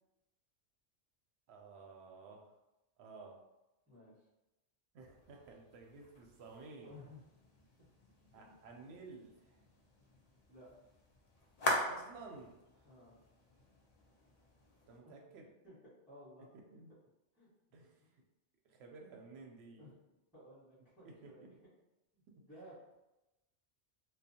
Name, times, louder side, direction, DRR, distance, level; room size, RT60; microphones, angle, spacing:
voice 1, 1.5-2.5 3.0-3.4 4.9-7.0 8.3-9.6 11.9-12.9 14.9-15.5 16.4-16.9 17.7-18.0 18.6-19.9 21.0-21.5, right 3 dB, 70° right, 1 dB, 0.8 m, -54 dB
sound 1, 5.0-15.0, left 1 dB, 60° left, 0.4 m, -44 dB
voice 2, 6.8-7.2 7.8-7.9 8.3-8.6 10.5-10.7 12.8-13.2 15.0-15.1 15.6-15.8 16.1-16.5 17.3-17.5 19.8-20.0 20.3-21.5 22.1-22.8, left 1 dB, ahead, -13 dB, 1.2 m, -56 dB
2.5 x 2.1 x 2.7 m, 0.97 s
omnidirectional pair, 1.2 m